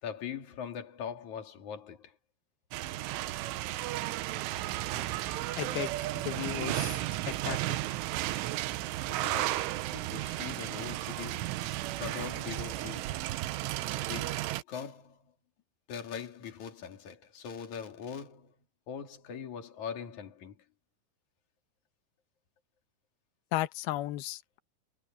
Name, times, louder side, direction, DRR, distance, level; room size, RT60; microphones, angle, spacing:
voice 1, 0.0-2.2 9.1-13.2 14.1-15.3 15.9-18.5 18.9-20.6, left 7 dB, 45° left, 3.8 m, -42 dB
sound 1, 2.7-14.6, right 16 dB, 85° right, 3.4 m, -34 dB
voice 2, 5.6-5.9 6.2-7.0 7.4-7.6 23.5-24.6, left 15 dB, 70° left, 2.6 m, -34 dB
omnidirectional pair, 5.4 m